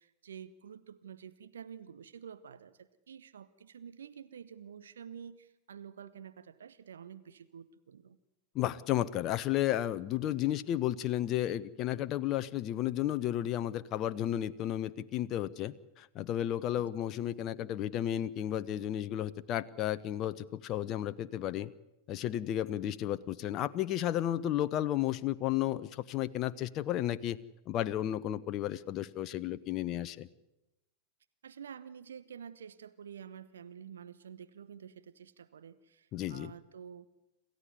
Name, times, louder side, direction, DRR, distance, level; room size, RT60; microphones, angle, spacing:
voice 1, 0.0-8.2 16.7-16.9 31.4-37.1, right 8 dB, 65° right, 14 dB, 1.0 m, -49 dB
voice 2, 8.5-21.7 22.1-27.4 27.7-30.3 36.1-36.5, left 12 dB, 35° left, 14 dB, 0.7 m, -33 dB
27.5 x 14.5 x 9.5 m, 0.94 s
figure-of-eight pair, 90°, 0 cm